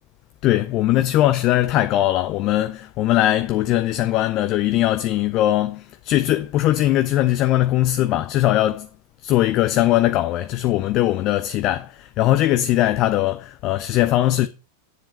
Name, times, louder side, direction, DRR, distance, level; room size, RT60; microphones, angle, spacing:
voice 1, 0.4-8.9 9.2-14.5, left 14 dB, 40° left, 0.6 m, -20 dB
9.4 x 7.5 x 4.2 m
figure-of-eight pair, 90°, 0 cm